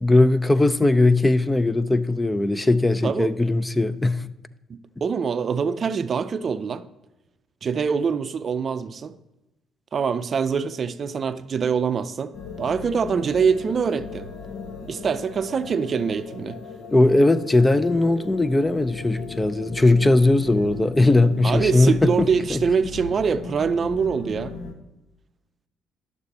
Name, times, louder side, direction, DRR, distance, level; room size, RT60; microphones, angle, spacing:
voice 1, 0.0-4.2 16.9-22.6, left 2 dB, 15° left, 0.5 m, -19 dB
voice 2, 4.7-6.9 7.6-9.1 9.9-12.3 12.6-14.3 14.9-16.6 21.4-24.5, right 6 dB, 50° right, 0.5 m, -24 dB
sound 1, 12.3-24.7, left 4 dB, 70° left, 1.3 m, -37 dB
11.5 x 6.8 x 4.2 m
supercardioid pair, 65°, 0 cm